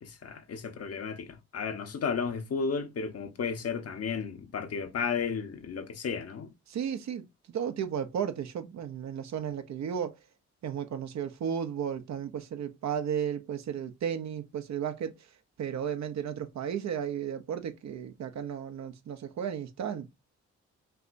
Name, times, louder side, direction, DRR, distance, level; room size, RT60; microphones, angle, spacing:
voice 1, 0.0-6.5, left 6 dB, 55° left, 1.0 m, -33 dB
voice 2, 6.7-10.2 10.6-15.3 15.6-20.1, right 8 dB, 65° right, 0.8 m, -34 dB
5.8 x 2.8 x 2.6 m
supercardioid pair, 55°, 30 cm